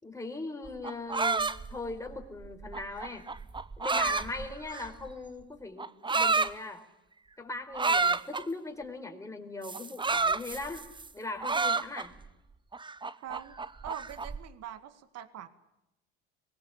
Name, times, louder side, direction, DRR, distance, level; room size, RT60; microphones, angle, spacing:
voice 1, 0.0-3.3 3.8-6.8 7.4-12.1, left 2 dB, 10° left, 3 dB, 4.6 m, -40 dB
sound 1, 0.7-5.1 5.8-6.5 7.7-8.4 9.6-11.1 11.4-12.3 12.7-14.4, right 4 dB, 15° right, 0.9 m, -30 dB
voice 2, 13.2-13.6 13.8-15.5, right 10 dB, 50° right, 12 dB, 2.1 m, -43 dB
24.0 x 21.0 x 8.6 m, 0.91 s
hypercardioid pair, 75°, 32 cm